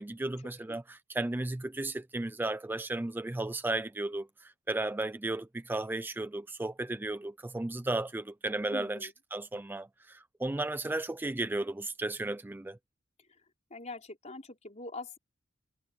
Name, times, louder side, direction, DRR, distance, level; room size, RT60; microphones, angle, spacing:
voice 1, 0.0-12.8, right 2 dB, 10° right, 0.3 m, -34 dB
voice 2, 8.7-9.1 13.7-15.2, left 2 dB, 35° left, 4.3 m, -43 dB
head